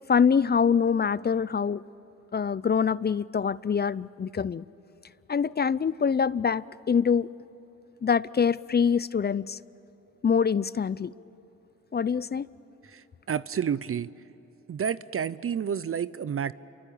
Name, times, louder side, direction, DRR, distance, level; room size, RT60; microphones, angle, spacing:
voice 1, 0.1-1.8 2.3-4.6 5.3-7.3 8.0-9.6 10.2-11.1 11.9-12.5, left 6 dB, 30° left, 20 dB, 0.5 m, -24 dB
voice 2, 12.8-14.1 14.7-16.5, right 8 dB, 45° right, 17 dB, 0.6 m, -30 dB
28.5 x 23.5 x 8.6 m, 3.0 s
cardioid pair, 55°, 31 cm